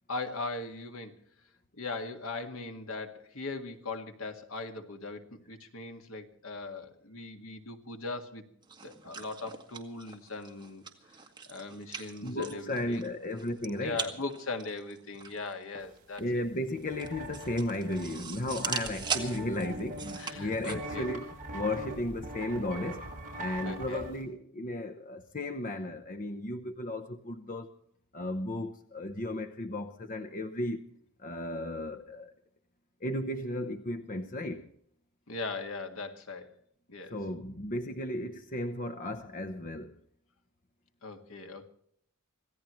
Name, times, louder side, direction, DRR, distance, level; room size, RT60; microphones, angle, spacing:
voice 1, 0.1-1.2 1.7-8.4 8.8-10.8 11.5-13.0 13.8-16.4 20.2-21.1 23.6-24.0 35.3-36.6 36.9-37.2 41.0-41.7, left 3 dB, 75° left, 2.0 m, -39 dB
sound 1, 8.6-20.7, right 5 dB, 20° right, 2.0 m, -41 dB
voice 2, 12.2-14.0 16.2-23.1 23.3-27.7 28.1-30.8 31.2-32.3 33.0-34.7 37.1-39.9, left 1 dB, 40° left, 0.9 m, -35 dB
sound 2, 16.4-16.5 16.7-24.2, right 1 dB, 40° right, 6.2 m, -42 dB
26.0 x 16.5 x 3.2 m
head